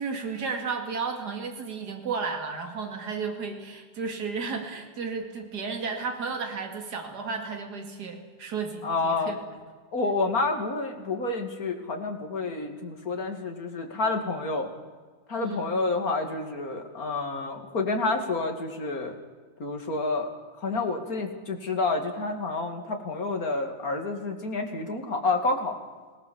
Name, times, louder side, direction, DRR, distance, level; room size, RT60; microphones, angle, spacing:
voice 1, 0.0-9.4 15.4-15.7, right 5 dB, 65° right, 4 dB, 2.8 m, -33 dB
voice 2, 8.8-9.4 9.9-14.7 15.3-19.1 19.6-20.3 20.5-25.8, left 3 dB, 55° left, 4 dB, 3.0 m, -29 dB
26.0 x 18.5 x 7.2 m, 1.5 s
omnidirectional pair, 1.9 m